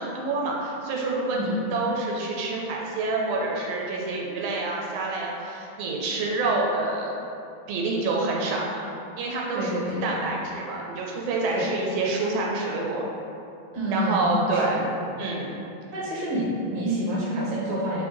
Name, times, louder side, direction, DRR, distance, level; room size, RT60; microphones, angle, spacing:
voice 1, 0.0-7.1 7.7-8.8 9.2-13.0 13.9-14.8 15.2-15.5, right 3 dB, 85° right, -2 dB, 1.4 m, -27 dB
voice 2, 9.5-10.1 11.5-11.7 13.7-14.8 15.9-18.0, equal, 60° right, -5 dB, 1.3 m, -28 dB
3.3 x 2.6 x 3.7 m, 2.7 s
omnidirectional pair, 2.2 m